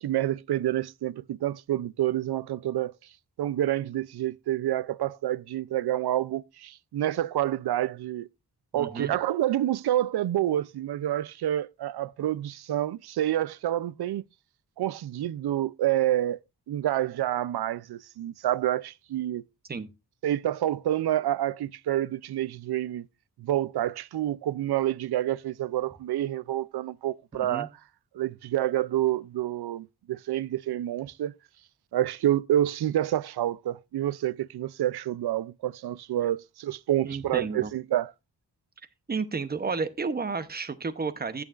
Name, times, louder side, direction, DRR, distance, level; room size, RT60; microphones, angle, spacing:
voice 1, 0.0-2.9 3.4-8.3 8.7-14.2 14.8-16.4 16.7-19.4 20.2-23.1 23.4-27.7 28.1-31.3 31.9-38.1, right 12 dB, 75° right, 0.5 m, -28 dB
voice 2, 8.7-9.1 19.7-19.9 27.3-27.7 37.0-37.7 39.1-41.4, right 4 dB, 25° right, 0.8 m, -32 dB
13.5 x 9.0 x 2.5 m
wide cardioid pair, 160°, 39 cm